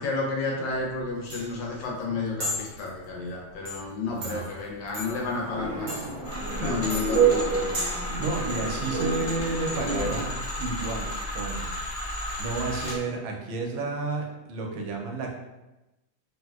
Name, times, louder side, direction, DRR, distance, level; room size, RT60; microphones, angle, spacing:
voice 1, 0.0-6.0 6.6-7.7, left 3 dB, 75° left, -1 dB, 1.3 m, -31 dB
sound 1, 0.7-8.1, left 1 dB, 55° right, 0.9 m, -37 dB
voice 2, 4.1-4.4 6.5-6.8 8.2-10.3 10.6-11.1 11.3-11.6 12.4-15.4, right 3 dB, 90° right, 1 dB, 1.4 m, -31 dB
sound 2, 5.0-10.2, right 6 dB, 75° right, 0.6 m, -29 dB
sound 3, 6.2-13.0, left 1 dB, 50° left, 0.9 m, -33 dB
3.3 x 2.7 x 2.2 m, 1.0 s
omnidirectional pair, 2.1 m